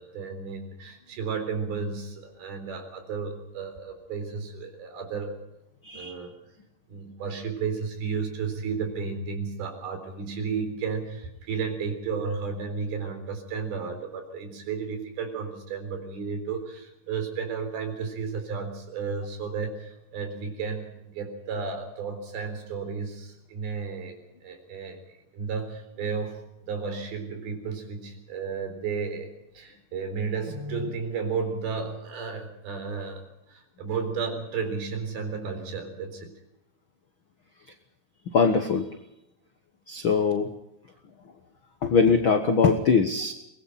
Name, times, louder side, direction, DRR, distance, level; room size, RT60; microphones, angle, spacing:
voice 1, 0.0-5.4 5.9-6.4 6.9-25.0 25.3-36.3, right 5 dB, 80° right, 6 dB, 5.8 m, -33 dB
voice 2, 38.3-38.9 39.9-40.5 41.8-43.3, left 5 dB, 70° left, 7 dB, 1.2 m, -22 dB
23.5 x 20.0 x 5.7 m, 0.87 s
omnidirectional pair, 4.3 m